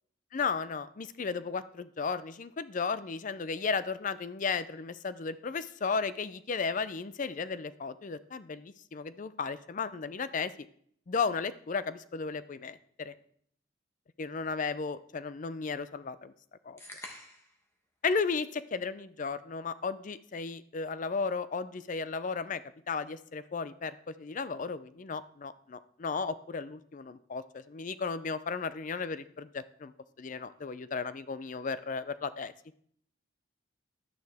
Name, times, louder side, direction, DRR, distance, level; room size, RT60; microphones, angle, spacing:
voice 1, 0.3-10.5 11.1-13.1 14.2-16.3 16.7-16.8 18.0-22.6 22.9-29.9 30.2-32.5, left 5 dB, 40° left, 15 dB, 0.4 m, -34 dB
sound 1, 16.8-17.6, left 1 dB, 15° left, 1.1 m, -46 dB
11.0 x 9.4 x 3.4 m, 0.64 s
head